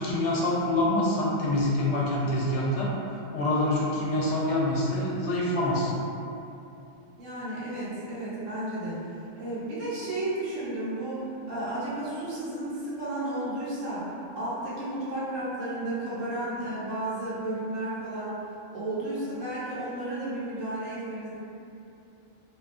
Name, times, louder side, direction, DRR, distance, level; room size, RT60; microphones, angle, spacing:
voice 1, 0.0-2.9 3.3-5.9, left 1 dB, 70° left, -5 dB, 0.8 m, -26 dB
voice 2, 7.2-18.4 18.7-21.3, right 1 dB, 75° right, -10 dB, 1.2 m, -33 dB
2.7 x 2.2 x 2.4 m, 2.8 s
omnidirectional pair, 1.4 m